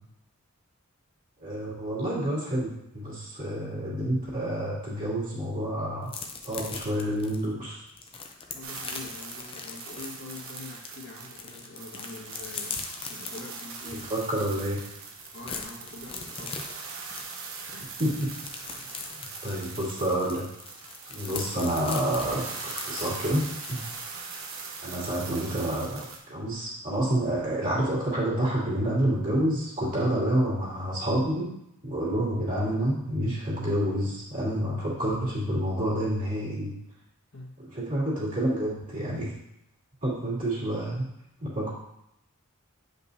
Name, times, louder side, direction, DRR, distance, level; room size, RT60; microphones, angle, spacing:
voice 1, 1.4-6.1 6.4-7.8 14.1-14.8 18.0-18.4 19.4-20.5 21.1-23.8 24.8-31.5 31.8-36.8 37.6-39.4 40.0-41.0 41.4-41.7, right 1 dB, 40° right, -7 dB, 2.8 m, -28 dB
sound 1, 6.1-10.9 11.2-14.1 14.5-14.6 14.9-23.8, left 5 dB, 25° left, 0.6 m, -40 dB
voice 2, 8.5-12.8 13.1-14.2 15.3-17.0 17.7-18.0 18.6-19.1 37.3-37.5, left 2 dB, 60° left, -3 dB, 1.7 m, -44 dB
sound 2, 8.6-26.2, right 4 dB, 65° right, 1.0 m, -41 dB
8.9 x 5.4 x 2.8 m, 0.81 s
head